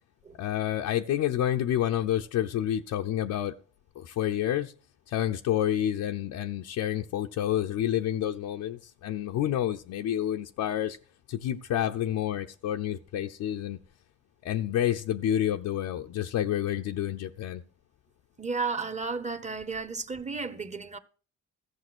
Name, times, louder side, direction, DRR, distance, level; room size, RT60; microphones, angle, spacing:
voice 1, 0.4-3.5 4.0-4.7 5.1-11.0 11.3-13.8 14.4-17.6, left 11 dB, 80° left, 0.7 m, -29 dB
voice 2, 18.4-21.0, right 4 dB, 25° right, 1.1 m, -33 dB
14.5 x 7.0 x 6.2 m
cardioid pair, 90°, 30 cm